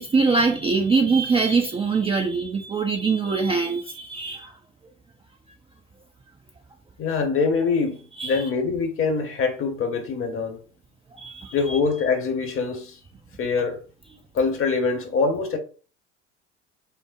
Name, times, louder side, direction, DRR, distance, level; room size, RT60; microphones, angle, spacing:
voice 1, 0.0-4.5 8.2-8.5 11.1-11.8, right 4 dB, 15° right, 0.5 m, -23 dB
voice 2, 7.0-10.6 11.5-12.9 13.4-13.8 14.3-15.6, left 4 dB, 35° left, 1.0 m, -24 dB
5.5 x 2.0 x 2.5 m
hypercardioid pair, 65°, 36 cm